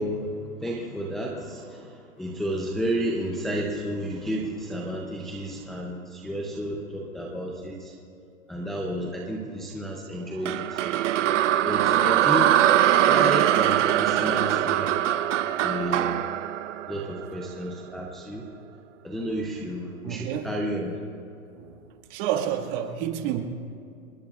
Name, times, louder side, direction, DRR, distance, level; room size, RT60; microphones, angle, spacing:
voice 1, 0.0-7.9 8.5-10.8 11.6-14.9 15.6-16.2 16.9-18.5 19.0-21.0, equal, ahead, -3 dB, 0.5 m, -31 dB
sound 1, 10.5-17.6, right 12 dB, 60° right, 0.8 m, -22 dB
voice 2, 20.0-20.6 21.5-21.8 22.1-23.4, right 10 dB, 35° right, 4 dB, 1.7 m, -29 dB
28.5 x 20.5 x 2.4 m, 2.5 s
hypercardioid pair, 145°, 42 cm